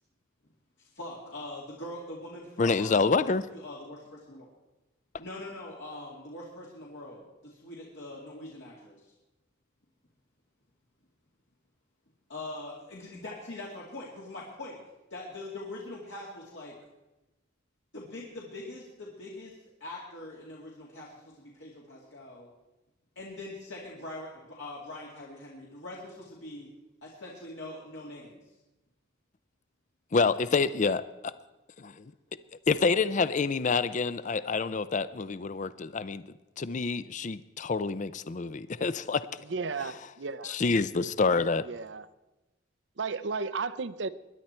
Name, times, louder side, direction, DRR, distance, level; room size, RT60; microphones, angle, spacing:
voice 1, 0.8-4.5 5.2-9.1 12.3-14.8 15.1-16.7 17.9-19.5 19.8-22.5 23.2-26.7 27.0-28.4, left 2 dB, 75° left, -4 dB, 2.5 m, -43 dB
voice 2, 2.6-3.4 30.1-31.3 31.8-31.9 32.7-36.2 36.6-39.3 40.4-41.7, left 4 dB, 40° left, 15 dB, 0.5 m, -27 dB
voice 3, 39.5-40.6 41.6-42.1 43.0-44.1, right 4 dB, 70° right, 14 dB, 0.6 m, -34 dB
21.5 x 11.0 x 4.4 m, 1.0 s
head